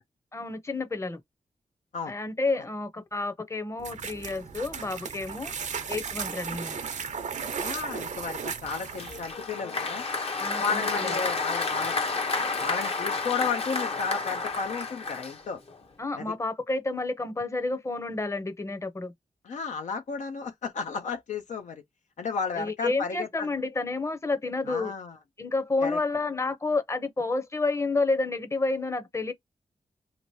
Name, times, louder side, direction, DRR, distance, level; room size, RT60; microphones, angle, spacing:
voice 1, 0.3-1.2 2.1-5.5 5.9-6.8 10.4-11.1 16.0-19.1 22.5-24.9 25.4-29.3, left 3 dB, 20° left, 0.8 m, -30 dB
sound 1, 3.8-9.4, right 6 dB, 70° right, 0.6 m, -35 dB
voice 2, 7.6-10.0 10.6-11.9 12.6-15.6 16.1-16.3 19.4-21.8 22.2-23.5 24.7-25.2 25.8-26.0, left 5 dB, 75° left, 0.5 m, -33 dB
Applause, 8.7-15.8, left 3 dB, 50° left, 0.9 m, -30 dB
2.9 x 2.6 x 3.0 m
cardioid pair, 60°, 13 cm